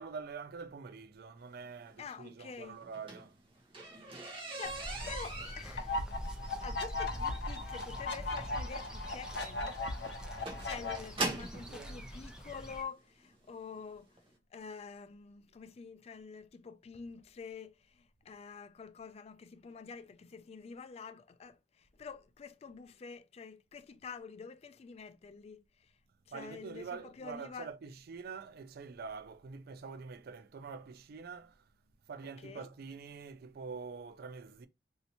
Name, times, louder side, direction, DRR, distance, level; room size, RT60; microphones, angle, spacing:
voice 1, 0.0-3.4 10.8-10.9 11.2-12.1 26.3-31.6 32.1-34.7, right 5 dB, 60° right, 0.4 m, -46 dB
voice 2, 2.0-2.8 4.6-5.9 6.6-9.8 10.6-14.2 14.5-26.0 26.3-27.7 32.2-32.7, left 5 dB, 35° left, 0.3 m, -47 dB
sound 1, 2.8-11.7 12.6-12.7 13.2-13.5 13.7-13.8 14.2-14.3, right 2 dB, 30° right, 0.9 m, -41 dB
sound 2, 4.6-12.8, equal, 5° right, 0.6 m, -44 dB
sound 3, 5.8-11.0, left 3 dB, 70° left, 0.7 m, -38 dB
3.2 x 2.8 x 2.8 m
head